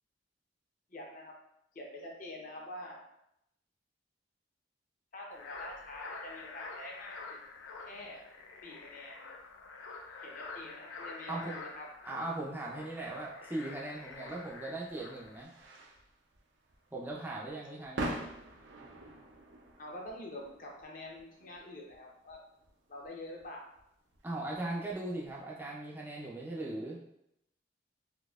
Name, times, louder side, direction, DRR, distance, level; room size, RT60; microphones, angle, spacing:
voice 1, 0.9-1.3 1.7-3.0 5.1-7.2 7.9-8.2 8.6-9.3 10.2-11.9 19.8-22.4 22.9-23.7, left 1 dB, 45° left, -1 dB, 0.7 m, -46 dB
sound 1, 5.3-15.4, left 4 dB, 90° left, 0.4 m, -47 dB
voice 2, 11.3-11.6 12.0-15.5 16.9-18.2 24.2-27.0, right 2 dB, 10° right, -4 dB, 0.4 m, -39 dB
sound 2, 14.1-25.4, right 1 dB, 75° right, 0.5 m, -46 dB
4.0 x 2.7 x 2.3 m, 0.79 s
head